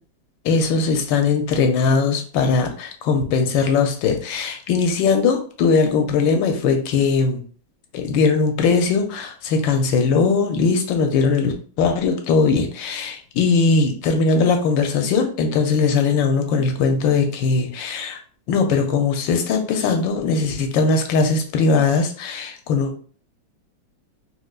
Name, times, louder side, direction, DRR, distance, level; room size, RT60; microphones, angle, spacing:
voice 1, 0.4-7.4 7.9-18.2 18.5-22.9, left 4 dB, 75° left, 5 dB, 1.2 m, -20 dB
4.4 x 2.3 x 2.3 m, 0.43 s
omnidirectional pair, 2.3 m